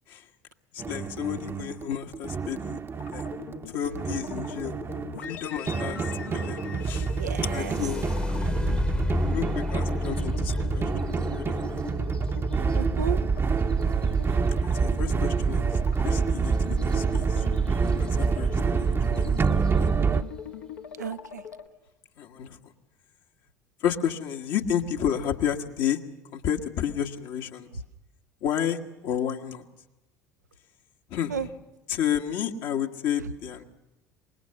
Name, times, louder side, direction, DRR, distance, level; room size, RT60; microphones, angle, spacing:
voice 1, 0.7-2.8 3.1-3.3 3.7-4.8 5.3-6.0 6.3-7.1 7.4-8.1 8.9-9.0 9.3-11.8 14.6-17.4 17.8-19.9 22.2-22.7 23.8-26.0 26.3-27.7 28.4-29.6 31.1-31.4 31.9-33.6, left 9 dB, 60° left, 4 dB, 1.4 m, -31 dB
sound 1, 0.8-20.2, right 5 dB, 25° right, 0.8 m, -27 dB
sound 2, 2.9-21.7, left 8 dB, 80° left, 1.4 m, -41 dB
sound 3, 6.9-14.7 16.8-16.9 17.4-17.9 18.5-18.6 19.1-19.5, left 2 dB, 15° left, 1.0 m, -32 dB
voice 2, 7.2-7.8 8.4-8.8 12.7-13.2 21.0-21.4 31.3-31.5, right 7 dB, 85° right, 12 dB, 0.7 m, -34 dB
24.5 x 20.5 x 6.4 m, 0.99 s
figure-of-eight pair, 65°, 9 cm